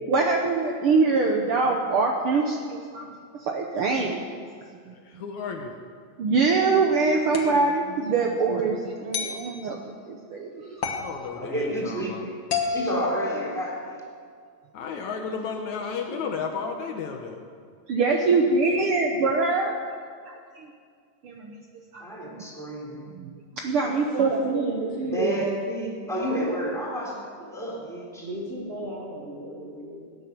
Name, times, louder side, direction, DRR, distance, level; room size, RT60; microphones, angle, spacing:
voice 1, 0.1-3.1 3.4-4.2 4.9-5.0 6.2-10.8 17.9-19.8 20.5-20.7 21.2-21.5 21.9-22.0 23.1-23.3 23.6-25.3, right 4 dB, 85° right, 1 dB, 1.2 m, -24 dB
voice 2, 4.9-5.7 10.9-12.3 14.7-17.4, left 5 dB, 70° left, 3 dB, 2.2 m, -33 dB
sound 1, 7.3-7.6 9.1-9.4 10.8-11.1 12.5-13.9, left 4 dB, 50° left, 1.4 m, -29 dB
voice 3, 11.3-12.3 12.7-14.0 22.0-23.0 25.1-28.3, equal, ahead, -4 dB, 3.4 m, -30 dB
voice 4, 15.8-16.2 18.0-18.2 23.8-25.2 28.2-30.2, equal, 35° right, -4 dB, 1.0 m, -36 dB
17.0 x 10.0 x 6.8 m, 2.1 s
omnidirectional pair, 3.9 m